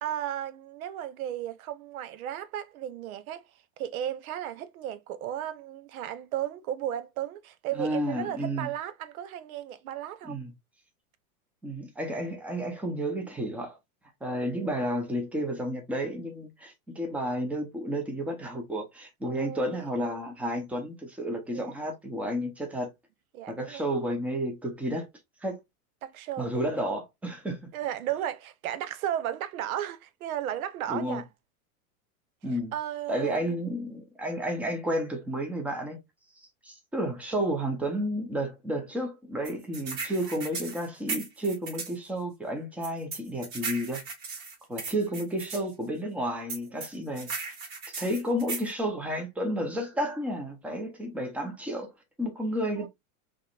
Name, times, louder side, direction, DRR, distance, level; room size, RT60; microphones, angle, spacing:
voice 1, 0.0-3.4 3.8-10.4 19.2-19.9 21.5-21.7 23.3-23.8 26.0-26.7 27.7-31.3 32.7-33.4 46.8-46.9 52.8-52.9, right 11 dB, 75° right, 0.8 m, -34 dB
voice 2, 7.7-8.7 10.2-10.5 11.6-13.8 14.2-22.9 23.5-25.1 25.4-25.6 26.4-27.6 30.9-31.2 32.4-32.7 33.1-36.0 36.6-44.0 44.7-47.5 47.9-51.9 52.2-52.9, equal, 5° right, 0.7 m, -31 dB
sound 1, 39.4-42.0 42.8-45.6 46.5-48.7, right 4 dB, 50° right, 2.7 m, -36 dB
4.8 x 3.1 x 2.4 m
supercardioid pair, 150°, 43 cm